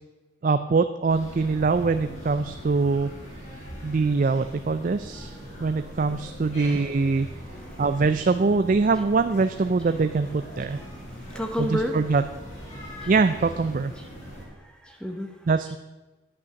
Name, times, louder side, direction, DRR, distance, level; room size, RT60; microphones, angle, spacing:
voice 1, 0.4-3.1 3.8-5.3 5.6-7.3 7.8-10.8 11.6-12.2 13.1-13.9 15.5-15.8, right 4 dB, 45° right, 10 dB, 0.4 m, -23 dB
sound 1, 1.1-14.5, equal, 35° left, 4.6 m, -41 dB
voice 2, 11.0-12.0 12.7-13.1 14.2-15.3, equal, 5° left, 3 dB, 1.0 m, -32 dB
11.0 x 8.5 x 6.4 m, 1.1 s
head